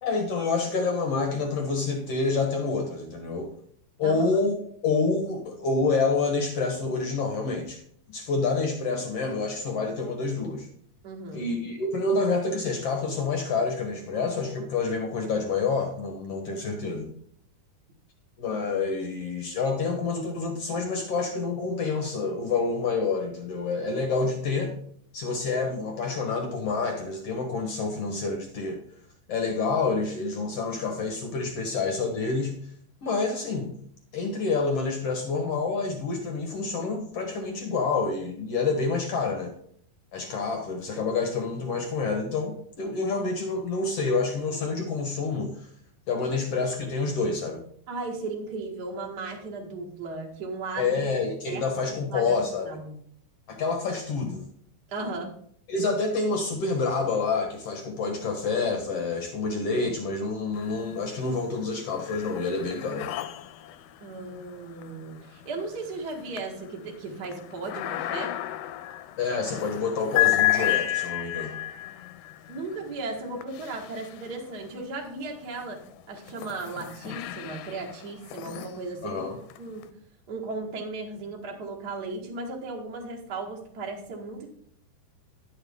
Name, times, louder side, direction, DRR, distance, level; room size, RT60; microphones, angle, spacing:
voice 1, 0.0-3.5 4.0-7.8 8.1-10.7 11.3-17.1 18.4-24.8 25.1-28.8 29.3-32.6 33.0-33.7 34.1-39.5 40.1-45.7 46.1-47.6 50.8-52.8 53.5-54.4 55.7-63.1 69.2-71.6 79.0-79.4, left 4 dB, 70° left, 3 dB, 1.4 m, -28 dB
voice 2, 11.0-11.5 47.9-51.1 51.5-53.0 54.9-55.3 64.0-68.3 72.5-75.8 76.1-79.2 79.6-79.9 80.3-84.5, right 3 dB, 50° right, 0 dB, 1.2 m, -36 dB
sound 1, 60.5-61.2 61.6-74.7 75.4-79.9, left 15 dB, 85° left, 2.5 m, -32 dB
11.0 x 8.0 x 3.6 m, 0.64 s
omnidirectional pair, 4.4 m